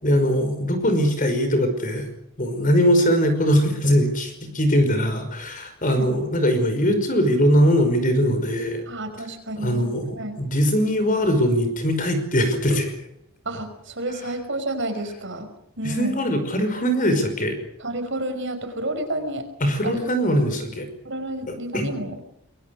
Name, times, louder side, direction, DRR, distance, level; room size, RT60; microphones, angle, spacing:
voice 1, 0.0-2.1 2.4-8.8 9.6-13.0 15.8-17.6 19.6-20.9 21.5-21.9, equal, 40° left, 8 dB, 5.4 m, -21 dB
voice 2, 8.9-10.4 13.5-15.5 15.8-16.2 17.8-19.5 19.8-20.0 21.0-22.2, right 1 dB, 55° right, 7 dB, 5.4 m, -30 dB
26.0 x 22.5 x 6.6 m, 0.75 s
head